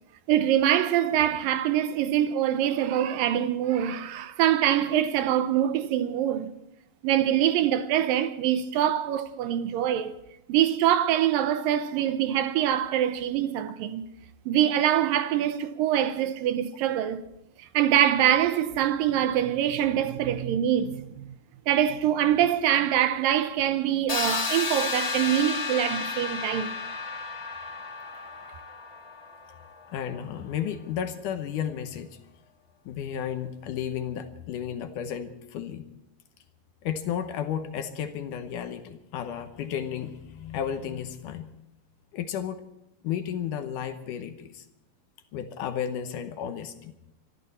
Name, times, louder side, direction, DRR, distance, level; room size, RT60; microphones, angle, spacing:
voice 1, 0.3-6.5 7.0-10.1 10.5-14.1 14.5-17.2 17.6-21.3 21.7-26.8, right 11 dB, 80° right, 2.4 m, -24 dB
sound 1, 24.1-29.9, left 4 dB, 35° left, 1.0 m, -32 dB
voice 2, 29.9-32.1 32.9-35.9 36.8-41.5 42.1-42.6 43.0-44.6 45.3-47.0, left 9 dB, 70° left, 2.3 m, -33 dB
24.5 x 13.0 x 4.3 m
omnidirectional pair, 4.2 m